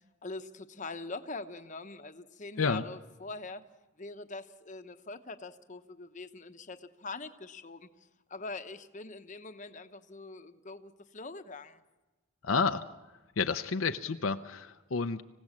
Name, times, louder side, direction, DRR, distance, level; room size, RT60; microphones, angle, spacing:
voice 1, 0.2-3.6 4.0-7.9 8.3-11.8, left 3 dB, 35° left, 9 dB, 1.0 m, -43 dB
voice 2, 12.4-12.8 13.4-15.2, left 5 dB, 70° left, 7 dB, 0.7 m, -30 dB
26.0 x 16.5 x 7.4 m, 1.2 s
head